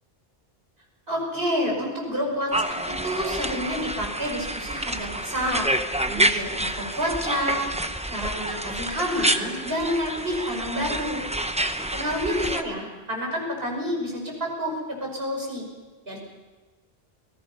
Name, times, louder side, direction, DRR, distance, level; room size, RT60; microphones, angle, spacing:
voice 1, 1.1-5.7 6.1-7.6 8.1-11.2 11.9-15.7 16.1-16.2, equal, 70° right, 0 dB, 5.8 m, -29 dB
sound 1, 2.5-12.6, right 1 dB, 5° right, 0.8 m, -28 dB
28.0 x 19.5 x 5.6 m, 1.2 s
omnidirectional pair, 1.0 m